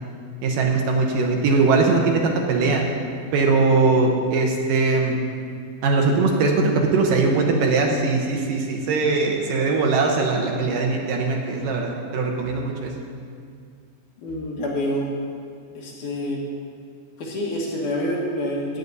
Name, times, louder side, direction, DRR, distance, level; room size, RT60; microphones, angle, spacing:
voice 1, 0.4-2.9 3.3-5.2 5.8-12.9, right 3 dB, 75° right, 1 dB, 2.4 m, -20 dB
voice 2, 14.2-15.1 15.7-16.4 17.2-18.8, left 1 dB, 60° left, -3 dB, 2.7 m, -27 dB
14.5 x 9.3 x 4.1 m, 2.2 s
omnidirectional pair, 4.3 m